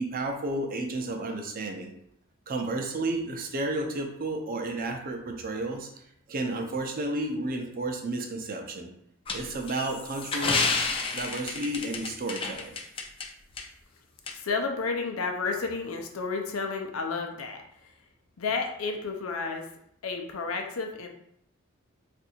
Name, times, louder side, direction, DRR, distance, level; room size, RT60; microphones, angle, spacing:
voice 1, 0.0-1.9 2.5-5.9 6.3-8.9 9.3-10.7 11.1-12.7, right 2 dB, 45° right, 3 dB, 0.5 m, -32 dB
sound 1, 9.3-13.3 13.6-13.7 14.3-14.4, left 4 dB, 25° left, 0.4 m, -30 dB
voice 2, 14.3-17.9 18.4-19.7 20.0-21.1, left 4 dB, 90° left, 3 dB, 0.6 m, -31 dB
2.6 x 2.6 x 4.2 m, 0.72 s
head